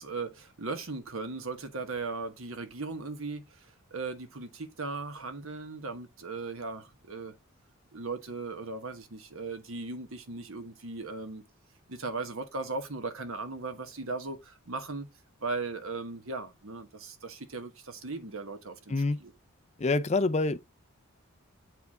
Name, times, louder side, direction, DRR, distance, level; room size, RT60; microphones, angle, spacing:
voice 1, 0.0-7.3 7.9-11.4 11.9-15.1 15.4-18.9 19.2-19.3, right 3 dB, 70° right, 1.3 m, -37 dB
voice 2, 18.9-19.2 19.8-20.6, left 3 dB, 30° left, 0.5 m, -26 dB
8.2 x 4.6 x 3.6 m
head